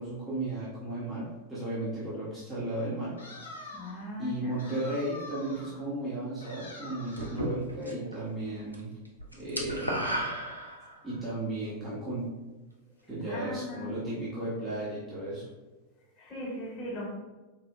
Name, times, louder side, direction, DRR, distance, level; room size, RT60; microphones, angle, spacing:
voice 1, 0.0-3.2 4.2-8.9 9.4-10.1 11.0-12.3 13.1-15.5, right 1 dB, 15° right, -10 dB, 1.1 m, -34 dB
sound 1, 3.2-4.1 4.6-5.8 6.4-7.5, left 2 dB, 75° left, 0.7 m, -45 dB
voice 2, 3.6-4.6 13.2-13.9 16.2-17.1, left 1 dB, 25° left, -6 dB, 1.3 m, -39 dB
sound 2, 7.2-8.1 8.4-8.8 9.0-11.1, equal, 90° right, 0.5 m, -34 dB
4.2 x 2.6 x 2.3 m, 1.2 s
figure-of-eight pair, 90°, 0 cm